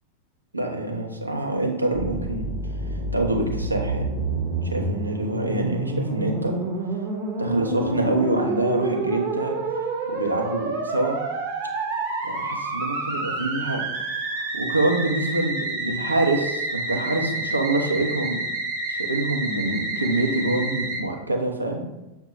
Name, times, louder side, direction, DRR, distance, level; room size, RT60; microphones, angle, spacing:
voice 1, 0.5-2.5 3.1-4.1 4.6-6.6 7.4-9.5 10.1-11.2 12.2-18.4 18.9-21.9, right 2 dB, 80° right, 2 dB, 0.6 m, -26 dB
Musical instrument, 1.9-21.0, right 2 dB, 45° right, 0.8 m, -28 dB
6.5 x 2.2 x 2.9 m, 0.96 s
figure-of-eight pair, 90°, 0 cm